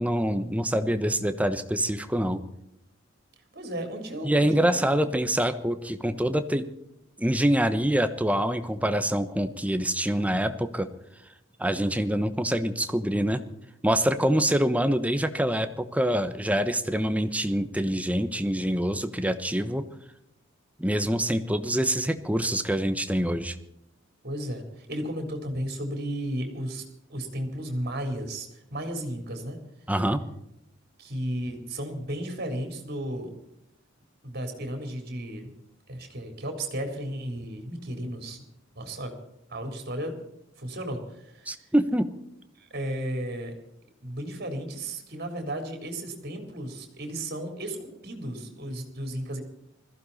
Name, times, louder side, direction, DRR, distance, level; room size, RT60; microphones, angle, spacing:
voice 1, 0.0-2.4 4.2-6.6 7.2-10.9 11.6-13.4 13.8-19.8 20.8-23.5 29.9-30.2 41.5-42.1, right 1 dB, 5° right, 10 dB, 1.1 m, -25 dB
voice 2, 3.5-4.8 24.2-26.8 27.1-29.6 31.0-33.3 34.2-35.5 35.9-38.4 38.8-39.1 39.5-40.2 40.6-41.5 42.7-43.5 44.0-49.4, right 1 dB, 55° right, 4 dB, 3.9 m, -34 dB
21.0 x 15.0 x 4.2 m, 0.81 s
head